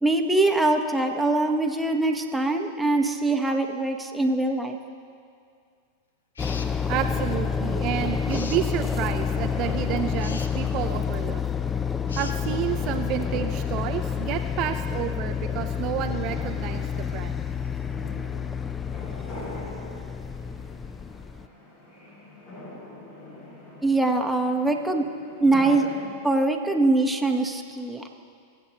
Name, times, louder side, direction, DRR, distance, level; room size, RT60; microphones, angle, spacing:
voice 1, 0.0-4.8 23.8-25.1 25.4-25.9 26.2-28.1, right 2 dB, 5° right, 3 dB, 1.0 m, -23 dB
sound 1, 6.3-6.7 8.3-8.6 10.2-10.5 12.1-12.4, left 4 dB, 85° left, 0.7 m, -39 dB
sound 2, 6.4-21.5, left 7 dB, 20° left, 0.4 m, -29 dB
voice 2, 6.9-11.4 12.2-17.5, right 11 dB, 45° right, 7 dB, 0.4 m, -30 dB
sound 3, 8.0-26.2, left 1 dB, 50° left, 3.0 m, -46 dB
21.5 x 7.9 x 2.9 m, 2.2 s
hypercardioid pair, 100°, 0 cm